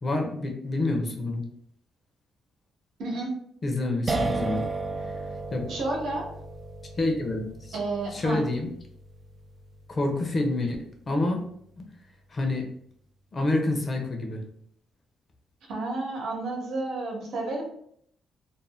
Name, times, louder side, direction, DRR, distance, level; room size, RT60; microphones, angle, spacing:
voice 1, 0.0-1.4 3.6-4.6 5.1-5.2 5.5-5.7 7.0-7.7 8.1-8.7 9.9-11.4 11.8-11.9 12.3-12.7 13.3-14.4, left 2 dB, 35° left, 2 dB, 0.7 m, -28 dB
voice 2, 3.0-3.3 5.7-6.2 7.7-8.4 15.7-17.7, right 2 dB, 75° right, -1 dB, 0.9 m, -31 dB
sound 1, 4.1-11.0, right 3 dB, 30° right, 0.4 m, -35 dB
2.6 x 2.1 x 3.4 m, 0.67 s
cardioid pair, 90°, 0 cm